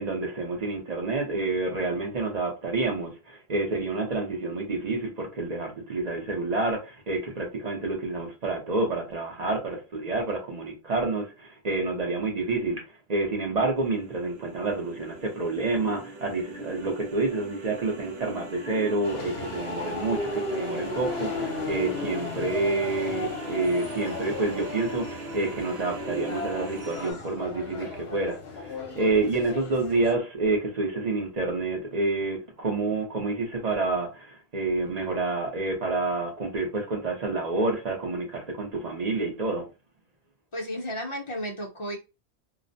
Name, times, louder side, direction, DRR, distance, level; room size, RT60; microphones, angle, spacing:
voice 1, 0.0-12.8 13.1-39.7, right 3 dB, 45° right, 0.7 m, -28 dB
sound 1, 13.8-27.1, right 2 dB, 75° right, 0.9 m, -40 dB
sound 2, 19.0-30.1, left 3 dB, 75° left, 0.9 m, -35 dB
voice 2, 40.5-42.0, equal, 35° left, 0.5 m, -33 dB
2.4 x 2.1 x 2.5 m
omnidirectional pair, 1.1 m